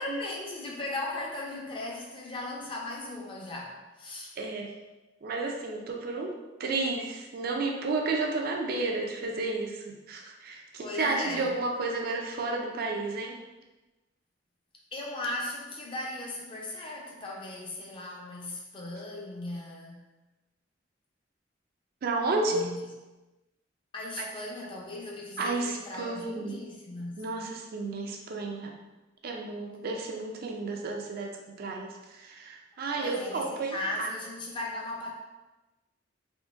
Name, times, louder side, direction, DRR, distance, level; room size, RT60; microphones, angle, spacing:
voice 1, 0.0-4.4 10.8-11.5 14.9-20.1 22.5-22.9 23.9-27.3 33.0-35.1, left 2 dB, 30° left, -2 dB, 0.5 m, -37 dB
voice 2, 4.4-4.7 5.2-6.3 6.6-13.4 22.0-22.6 24.2-24.3 24.6-24.7 25.4-26.6 27.2-28.8 29.2-31.3 31.6-34.1, right 3 dB, 55° right, 1 dB, 0.4 m, -32 dB
3.7 x 2.5 x 2.4 m, 1.1 s
head